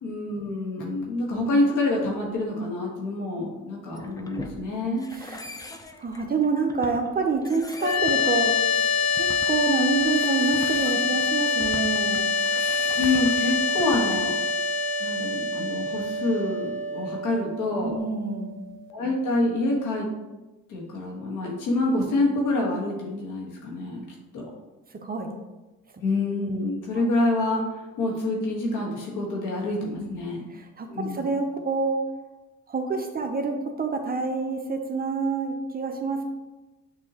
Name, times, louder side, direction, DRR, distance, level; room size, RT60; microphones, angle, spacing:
voice 1, 0.0-5.1 13.0-14.3 15.0-17.9 18.9-20.1 20.7-24.0 24.3-24.5 26.0-27.6 28.0-30.4 30.9-31.3, left 2 dB, 85° left, -2 dB, 1.4 m, -27 dB
sound 1, 3.9-14.4, left 2 dB, 10° left, 0.4 m, -42 dB
voice 2, 5.1-5.5 6.0-12.4 17.8-18.6 24.9-25.3 26.9-27.1 29.8-32.0 32.7-36.2, right 4 dB, 30° right, 4 dB, 0.6 m, -27 dB
sound 2, 7.8-18.9, left 4 dB, 65° left, 0.5 m, -26 dB
6.7 x 2.8 x 2.8 m, 1.1 s
cardioid pair, 90°, 30 cm